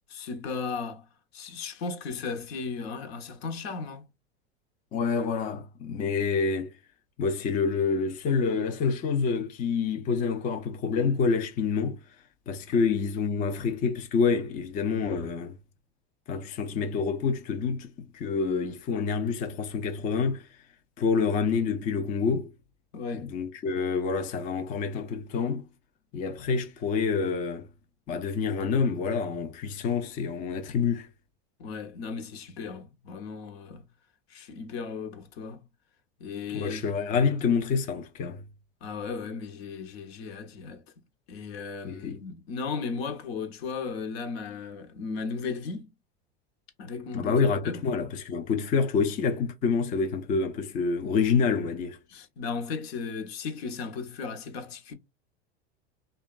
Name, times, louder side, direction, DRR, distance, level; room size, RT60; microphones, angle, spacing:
voice 1, 0.1-1.1 1.3-4.0 12.7-12.8 22.9-23.3 31.6-33.8 34.3-35.7 36.2-36.8 38.8-40.8 41.3-45.9 46.8-47.3 47.6-47.8 52.1-54.9, left 5 dB, 70° left, 0.8 m, -36 dB
voice 2, 4.9-6.7 7.2-12.0 12.5-15.5 16.3-20.5 21.0-22.5 23.2-25.6 26.1-27.7 28.1-31.1 36.5-38.4 41.8-42.2 47.1-52.0, left 5 dB, 25° left, 0.4 m, -27 dB
2.8 x 2.2 x 2.3 m
supercardioid pair, 120°, 31 cm